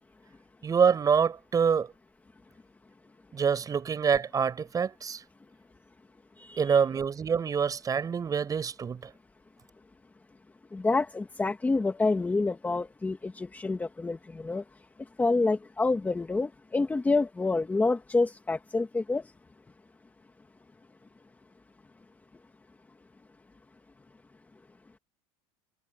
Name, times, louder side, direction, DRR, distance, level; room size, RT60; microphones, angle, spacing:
voice 1, 0.6-1.9 3.3-5.2 6.6-9.0, right 6 dB, 20° right, 6.8 m, -26 dB
voice 2, 6.4-6.8 10.7-14.6 15.2-19.2, left 3 dB, 10° left, 2.1 m, -28 dB
supercardioid pair, 145°, 16 cm